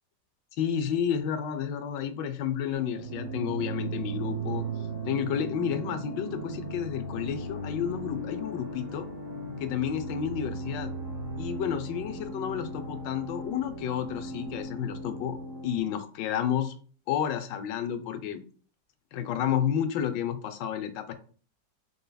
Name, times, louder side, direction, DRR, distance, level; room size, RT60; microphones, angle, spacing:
voice 1, 0.6-4.7 5.0-9.1 9.6-10.9 11.4-15.4 15.6-16.7 17.1-18.4 19.1-21.1, left 9 dB, 80° left, 9 dB, 1.3 m, -31 dB
sound 1, 2.7-15.8, right 2 dB, 40° right, 0.9 m, -37 dB
5.3 x 4.0 x 2.2 m, 0.43 s
omnidirectional pair, 2.0 m